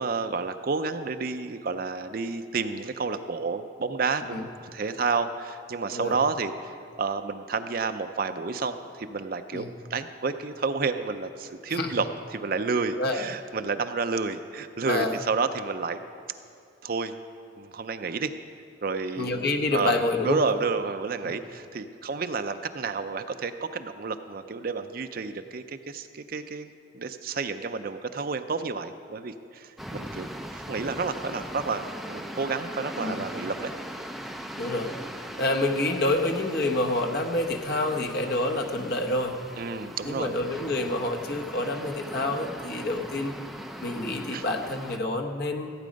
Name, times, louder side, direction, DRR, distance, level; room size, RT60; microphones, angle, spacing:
voice 1, 0.0-9.7 9.9-12.1 12.3-16.0 16.8-17.2 17.6-18.3 18.8-30.3 30.5-33.7 39.6-40.3 44.3-44.4, right 4 dB, 50° right, 9 dB, 0.5 m, -30 dB
voice 2, 14.9-15.2 19.2-20.4 21.2-21.3 33.0-33.2 34.6-34.9 35.4-39.4 40.0-43.4 43.8-45.7, left 2 dB, 55° left, 3 dB, 1.0 m, -28 dB
sound 1, 29.8-45.0, equal, ahead, 0.4 m, -40 dB
15.5 x 8.5 x 5.2 m, 2.6 s
head